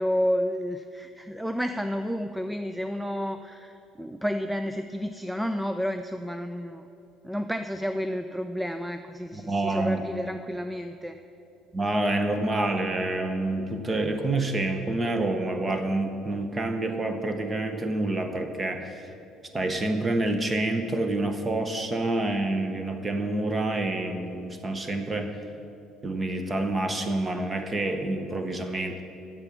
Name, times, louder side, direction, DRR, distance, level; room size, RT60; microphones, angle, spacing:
voice 1, 0.0-6.8 7.2-11.2, equal, 5° right, 8 dB, 0.3 m, -30 dB
voice 2, 9.3-10.1 11.7-19.0 19.5-25.4 26.0-29.0, right 2 dB, 20° right, 7 dB, 0.9 m, -28 dB
8.8 x 7.0 x 8.2 m, 2.7 s
cardioid pair, 145°, 0 cm